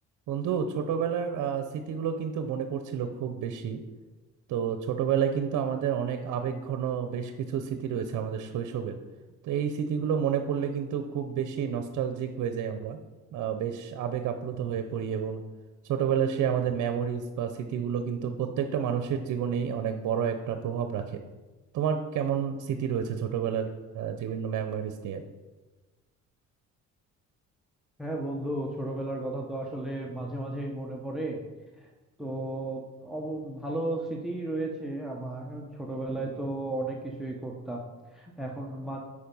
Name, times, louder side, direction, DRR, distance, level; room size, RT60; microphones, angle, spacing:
voice 1, 0.3-3.8 4.5-9.0 9.4-13.0 13.3-15.4 15.8-21.2 21.7-23.7 23.9-25.2, right 8 dB, 75° right, 7 dB, 0.7 m, -30 dB
voice 2, 28.0-31.4 31.8-31.9 32.2-39.0, right 1 dB, ahead, 0 dB, 1.0 m, -34 dB
8.5 x 5.0 x 5.4 m, 1.2 s
cardioid pair, 90°, 30 cm